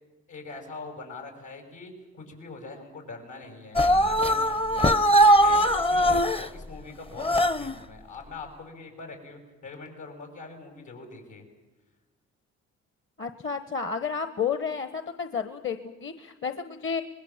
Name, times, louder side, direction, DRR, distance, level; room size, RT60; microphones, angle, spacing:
voice 1, 0.3-4.9 5.4-11.4, left 3 dB, 80° left, 3 dB, 6.7 m, -43 dB
sound 1, 3.8-6.5 7.2-7.8, equal, 20° left, 0.7 m, -20 dB
voice 2, 13.2-17.0, left 6 dB, 40° left, 9 dB, 1.2 m, -31 dB
25.0 x 21.0 x 7.4 m, 1.2 s
cardioid pair, 90°, 30 cm